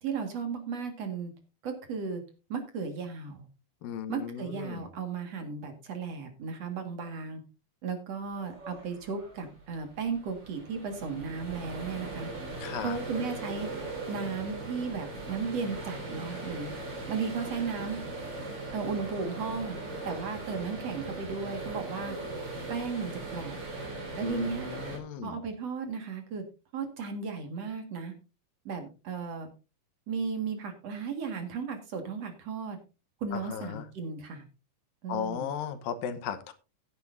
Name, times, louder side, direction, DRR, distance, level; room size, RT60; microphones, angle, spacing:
voice 1, 0.0-1.3 1.6-2.2 2.5-3.5 4.1-7.4 7.8-12.3 12.8-13.7 14.1-16.7 17.1-18.0 18.7-19.8 20.0-22.2 22.7-23.6 24.2-24.7 25.2-26.4 26.7-28.1 28.6-29.5 30.1-32.8 33.2-34.4 35.0-35.5, right 5 dB, 50° right, 6 dB, 2.7 m, -35 dB
voice 2, 3.8-4.9 12.6-13.0 24.2-25.4 33.3-33.9 35.1-36.5, left 9 dB, 90° left, 10 dB, 2.8 m, -36 dB
sound 1, 8.3-25.0, right 2 dB, 30° right, 3.7 m, -39 dB
15.5 x 9.9 x 2.6 m, 0.31 s
omnidirectional pair, 4.0 m